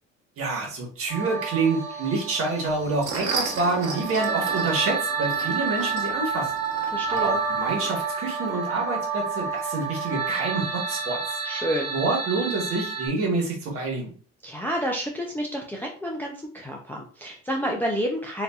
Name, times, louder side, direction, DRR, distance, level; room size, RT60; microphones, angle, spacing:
voice 1, 0.4-6.5 7.2-11.4 11.9-14.1, right 3 dB, 45° right, 0 dB, 1.2 m, -27 dB
sound 1, 1.1-13.1, right 5 dB, 10° right, 1.0 m, -29 dB
sound 2, 2.7-7.9, right 4 dB, 70° right, 1.1 m, -35 dB
voice 2, 6.9-7.4 11.4-11.9 14.4-18.4, equal, 5° left, -1 dB, 0.4 m, -29 dB
4.0 x 2.6 x 2.3 m, 0.40 s
cardioid pair, 150°, 31 cm